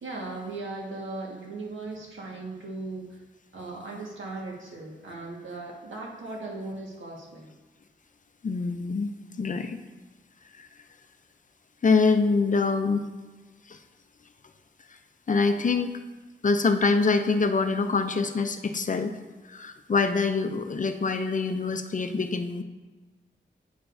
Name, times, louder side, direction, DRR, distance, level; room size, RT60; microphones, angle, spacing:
voice 1, 0.0-3.2 3.5-7.5, right 2 dB, 80° right, -3 dB, 1.6 m, -38 dB
voice 2, 8.4-9.1 9.4-9.8 10.6-10.7 11.8-13.0 13.7-13.8 15.3-16.0 16.4-19.1 19.5-22.6, left 4 dB, 40° left, 8 dB, 0.5 m, -25 dB
8.9 x 6.7 x 2.6 m, 1.2 s
wide cardioid pair, 90°, 20 cm